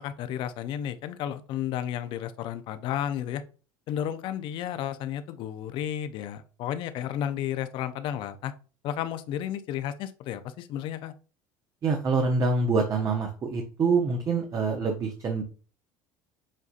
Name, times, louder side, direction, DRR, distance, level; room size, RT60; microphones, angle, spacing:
voice 1, 0.0-3.4 3.9-8.5 8.8-11.1, left 10 dB, 60° left, 11 dB, 0.6 m, -32 dB
voice 2, 11.8-15.4, right 4 dB, 35° right, 3 dB, 0.8 m, -25 dB
7.5 x 2.6 x 2.5 m, 0.37 s
supercardioid pair, 100°, 9 cm